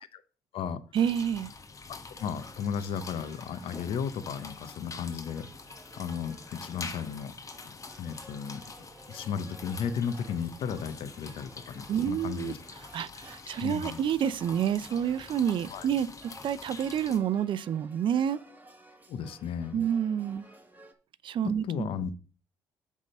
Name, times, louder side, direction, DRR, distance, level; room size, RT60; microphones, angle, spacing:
sound 1, 0.9-17.2, left 4 dB, 35° left, 1.2 m, -46 dB
voice 1, 0.9-1.5 11.9-12.5 12.9-18.4 19.7-20.4 21.2-21.9, right 9 dB, 60° right, 0.5 m, -29 dB
sound 2, 2.1-20.9, right 2 dB, 20° right, 1.7 m, -55 dB
voice 2, 2.2-5.5 6.0-7.3 7.6-8.6 9.1-12.6 13.6-14.0 15.7-15.9 19.1-19.8 21.4-22.1, left 7 dB, 70° left, 0.9 m, -34 dB
8.2 x 3.7 x 6.6 m
supercardioid pair, 65°, 10 cm